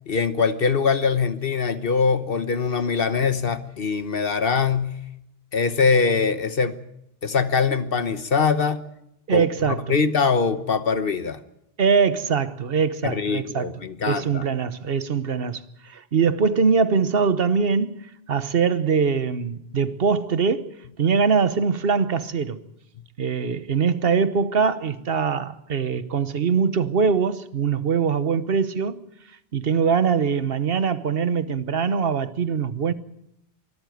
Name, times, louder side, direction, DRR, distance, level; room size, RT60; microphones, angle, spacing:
voice 1, 0.1-5.0 5.5-6.8 7.2-8.8 9.3-11.4 13.0-14.4, left 5 dB, 65° left, 1.3 m, -22 dB
voice 2, 9.3-9.8 11.8-13.7 14.1-22.6 23.2-29.0 29.5-32.9, right 6 dB, 65° right, 1.3 m, -22 dB
24.0 x 13.5 x 9.3 m
omnidirectional pair, 1.1 m